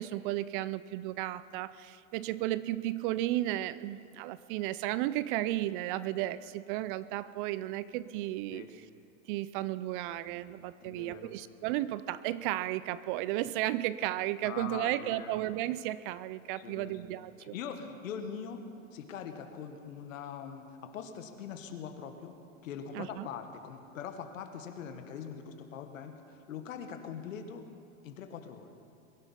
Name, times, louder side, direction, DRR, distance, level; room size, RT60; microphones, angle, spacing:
voice 1, 0.0-8.9 9.3-17.6 22.9-23.3, right 15 dB, 40° right, 16 dB, 0.5 m, -34 dB
voice 2, 10.8-11.3 14.4-15.4 16.5-27.7 28.0-28.7, left 7 dB, 75° left, 6 dB, 1.8 m, -43 dB
22.0 x 11.5 x 5.7 m, 2.5 s
hypercardioid pair, 115°, 40 cm